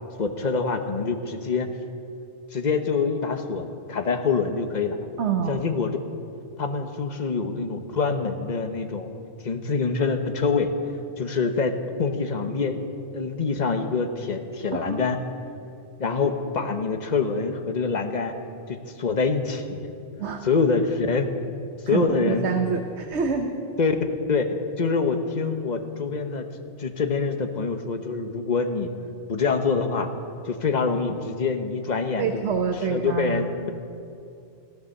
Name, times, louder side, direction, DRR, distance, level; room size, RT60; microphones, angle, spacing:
voice 1, 0.2-1.7 2.5-5.0 5.5-6.0 6.6-9.1 9.4-10.7 11.2-12.8 13.1-15.2 16.0-18.4 18.7-19.9 20.4-21.3 21.9-22.5 23.8-24.0 24.3-26.5 26.8-28.9 29.3-30.1 30.5-32.4 32.9-33.7, left 4 dB, 40° left, 6 dB, 1.1 m, -25 dB
voice 2, 5.2-5.6 14.7-15.2 20.2-20.4 21.9-23.5 32.2-33.5, right 6 dB, 70° right, 4 dB, 1.2 m, -27 dB
15.5 x 12.0 x 6.5 m, 2.5 s
omnidirectional pair, 1.2 m